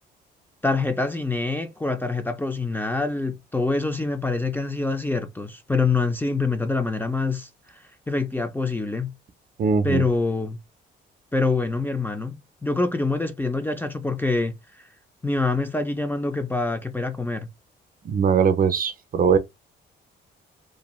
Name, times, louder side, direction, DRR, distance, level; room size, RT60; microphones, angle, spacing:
voice 1, 0.6-7.5 8.1-9.1 9.8-10.6 11.3-12.3 12.6-14.5 15.2-17.5, left 3 dB, 10° left, 0.4 m, -25 dB
voice 2, 9.6-10.0 18.0-19.4, right 6 dB, 45° right, 0.5 m, -20 dB
2.5 x 2.2 x 3.0 m
cardioid pair, 90°, 20 cm